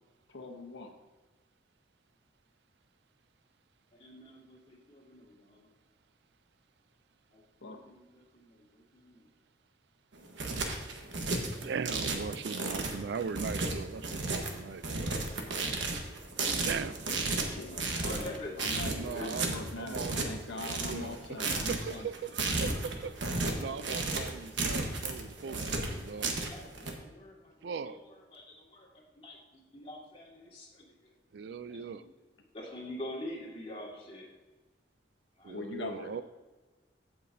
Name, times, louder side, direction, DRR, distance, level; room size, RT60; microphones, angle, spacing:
voice 1, 0.3-0.9 7.6-7.8 17.4-22.1 35.5-36.2, left 2 dB, 70° left, 4 dB, 1.0 m, -42 dB
voice 2, 4.0-5.7 7.3-9.3 16.5-16.9 17.3-18.5 19.0-19.4 23.6-24.3 25.5-29.4 29.7-31.1 31.7-32.1 32.5-34.3 35.4-35.6, left 1 dB, 30° left, -3 dB, 1.9 m, -47 dB
sound 1, 10.1-26.9, right 3 dB, 80° right, 1.2 m, -33 dB
voice 3, 11.6-15.2 16.6-17.0 19.0-20.2 20.8-23.2 23.6-26.3 27.6-28.0 31.3-32.0 35.4-36.2, right 6 dB, 65° right, 14 dB, 0.3 m, -39 dB
15.5 x 5.8 x 2.7 m, 1.3 s
head